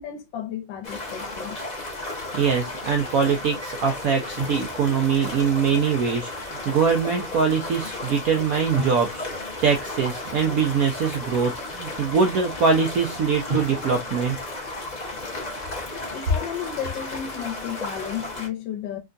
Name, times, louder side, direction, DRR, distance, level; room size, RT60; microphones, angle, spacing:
voice 1, 0.0-1.6 16.1-19.0, left 10 dB, 75° left, 1.4 m, -33 dB
sound 1, 0.8-18.5, left 2 dB, 35° left, 0.6 m, -34 dB
voice 2, 2.3-14.4, right 6 dB, 75° right, 0.8 m, -23 dB
Drum, 4.4-5.9 8.8-10.5 13.5-15.1, right 3 dB, 45° right, 0.7 m, -37 dB
3.6 x 2.2 x 2.5 m
omnidirectional pair, 2.1 m